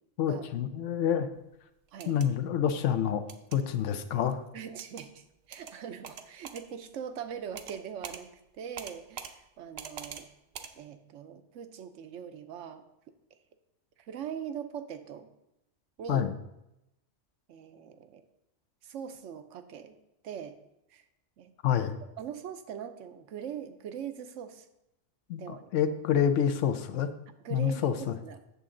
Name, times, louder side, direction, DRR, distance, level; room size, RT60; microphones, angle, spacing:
voice 1, 0.2-1.3 2.1-3.2 3.5-4.4 16.1-16.3 21.6-22.0 25.3-27.1 27.5-28.1, left 9 dB, 80° left, 10 dB, 1.0 m, -27 dB
sound 1, 1.9-2.3 3.3-3.6 4.8-5.1 5.5-5.7 6.0-6.6 7.6-7.8 8.0-8.2 8.8-9.3 9.8-10.2 10.5-10.7, right 7 dB, 65° right, 0.8 m, -42 dB
voice 2, 4.5-8.3 8.5-10.3 10.8-12.8 14.0-15.3 16.0-16.3 17.5-18.2 18.8-20.0 20.2-20.6 20.9-21.0 21.4-21.5 22.2-24.7 25.4-25.7 27.4-28.4, right 8 dB, 85° right, 9 dB, 1.0 m, -41 dB
8.3 x 6.8 x 3.7 m, 0.87 s
omnidirectional pair, 1.2 m